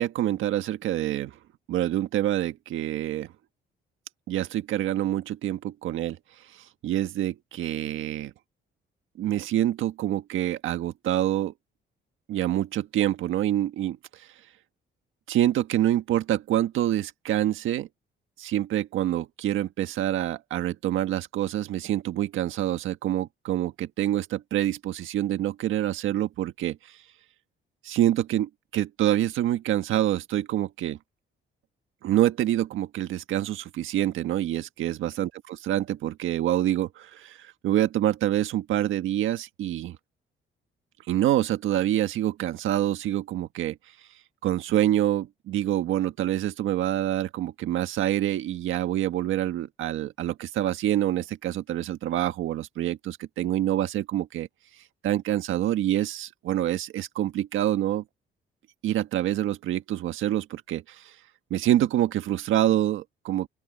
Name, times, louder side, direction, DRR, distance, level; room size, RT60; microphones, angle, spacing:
voice 1, 0.0-1.3 1.7-3.3 4.3-6.2 6.8-8.3 9.2-11.5 12.3-14.0 15.3-17.9 18.4-26.8 27.8-31.0 32.0-40.0 41.1-43.8 44.4-54.5 55.0-58.0 58.8-61.0 61.5-63.5, right 12 dB, 85° right, 1.6 m, -26 dB
open air
cardioid pair, 90°, 20 cm